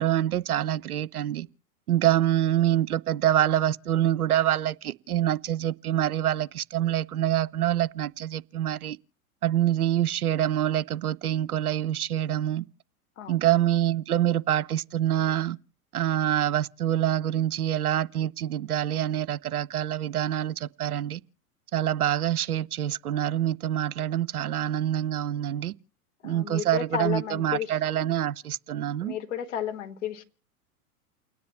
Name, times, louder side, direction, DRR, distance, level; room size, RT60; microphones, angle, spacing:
voice 1, 0.0-1.5 1.9-9.0 9.4-12.6 13.3-15.6 15.9-21.2 21.7-25.7 26.2-29.1, right 12 dB, 75° right, 0.5 m, -26 dB
voice 2, 13.2-13.5 26.2-27.8 29.0-30.2, left 9 dB, 55° left, 1.6 m, -33 dB
29.0 x 10.0 x 3.0 m
figure-of-eight pair, 95°, 44 cm